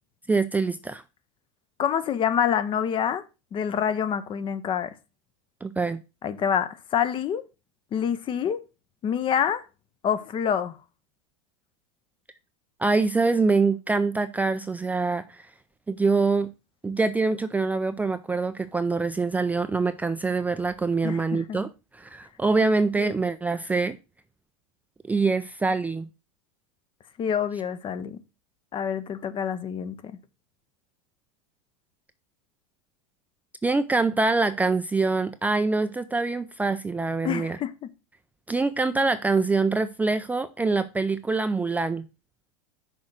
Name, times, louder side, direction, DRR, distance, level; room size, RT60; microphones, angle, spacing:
voice 1, 0.3-1.0 5.6-6.0 12.8-15.5 15.9-16.5 16.8-21.7 21.9-24.0 25.1-26.1 33.6-37.6 38.5-42.0, right 3 dB, 10° right, 0.4 m, -24 dB
voice 2, 1.8-3.2 3.5-4.9 6.2-7.4 7.9-8.6 9.0-9.6 10.0-10.8 21.0-21.6 23.0-23.1 27.2-28.2 28.7-30.1 37.2-37.9, left 8 dB, 30° left, 0.7 m, -27 dB
6.4 x 3.8 x 6.0 m
hypercardioid pair, 110°, 17 cm